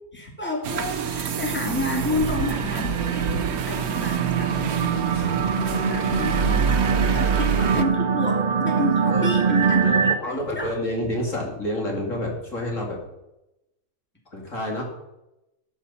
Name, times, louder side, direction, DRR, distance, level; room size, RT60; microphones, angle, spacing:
voice 1, 0.1-10.7, left 2 dB, 5° left, 0 dB, 2.9 m, -30 dB
sound 1, 0.6-7.8, right 7 dB, 75° right, 1.4 m, -26 dB
sound 2, 2.2-10.2, right 6 dB, 35° right, 0.8 m, -24 dB
voice 2, 4.7-5.5 7.2-7.4 9.1-9.5 9.8-13.0 14.3-14.8, left 1 dB, 55° left, -1 dB, 2.9 m, -30 dB
13.5 x 10.0 x 5.7 m, 0.92 s
omnidirectional pair, 1.6 m